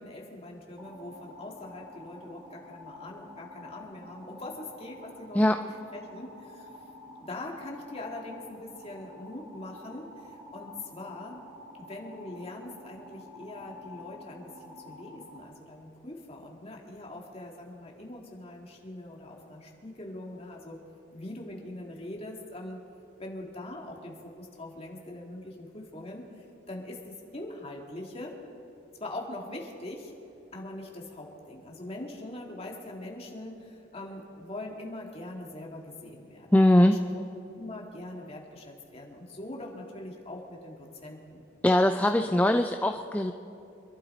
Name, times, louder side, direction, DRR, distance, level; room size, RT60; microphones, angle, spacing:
voice 1, 0.0-5.5 5.9-6.8 7.2-11.4 11.8-20.8 21.1-22.8 23.2-28.4 29.0-30.1 30.5-37.2 37.6-41.4 42.1-42.3, left 1 dB, 30° left, -1 dB, 2.0 m, -42 dB
sound 1, 0.8-15.5, left 2 dB, 25° right, 4.0 m, -49 dB
voice 2, 36.5-36.9 41.6-43.3, left 1 dB, 10° left, 6 dB, 0.3 m, -21 dB
26.0 x 12.0 x 4.3 m, 2.8 s
head